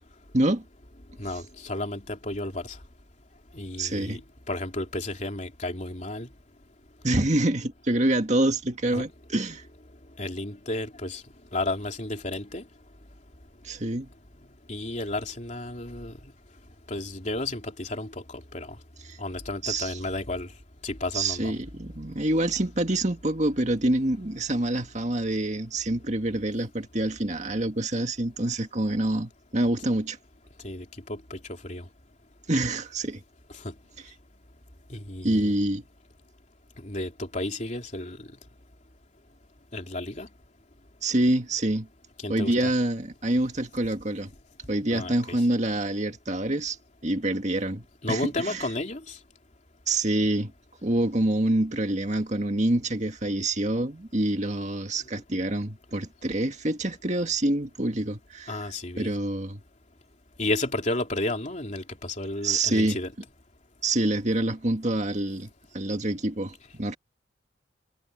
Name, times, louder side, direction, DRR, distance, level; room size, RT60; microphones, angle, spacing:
voice 1, 1.2-2.8 3.5-4.2 4.5-6.3 8.9-9.0 10.2-11.2 11.5-12.6 14.7-16.1 16.9-18.8 19.2-20.5 20.8-21.5 30.6-31.4 31.6-31.8 33.6-33.7 34.9-35.5 36.8-38.3 39.7-40.3 42.2-42.7 44.9-45.4 48.0-49.2 58.5-59.1 60.4-63.1, left 2 dB, 40° left, 3.3 m, -32 dB
voice 2, 3.8-4.2 7.0-9.6 13.6-14.1 19.1-19.2 19.6-20.0 21.1-30.2 32.5-33.2 35.2-35.8 41.0-41.9 42.3-44.3 44.7-46.8 47.0-48.6 49.9-50.5 50.8-58.6 59.0-59.6 62.4-63.0 63.8-67.0, right 1 dB, 40° right, 1.9 m, -26 dB
head